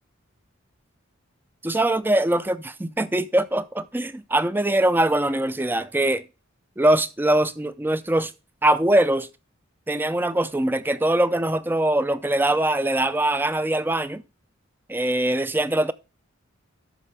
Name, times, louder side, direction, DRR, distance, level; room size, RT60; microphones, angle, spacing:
voice 1, 1.6-6.2 6.8-8.3 8.6-9.3 9.9-14.2 14.9-15.9, right 1 dB, 10° right, 0.4 m, -22 dB
13.0 x 5.8 x 3.3 m
head